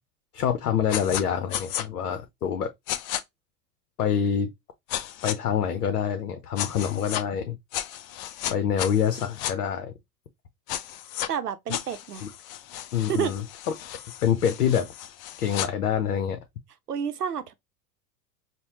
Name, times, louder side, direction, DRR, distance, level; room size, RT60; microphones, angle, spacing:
voice 1, 0.3-2.7 4.0-4.5 5.2-7.6 8.5-9.9 12.2-12.3 12.9-13.4 14.2-14.9 15.4-16.4, left 8 dB, 75° left, 0.7 m, -26 dB
sound 1, 0.9-1.2 1.5-1.8 2.9-3.2 4.9-5.4 6.6-7.2 7.7-9.5 10.7-11.3 11.7-15.7, left 12 dB, 40° left, 0.5 m, -33 dB
voice 2, 11.3-12.2 13.1-13.4 16.9-17.5, right 8 dB, 85° right, 0.7 m, -29 dB
5.4 x 2.2 x 3.0 m
figure-of-eight pair, 80°, 45 cm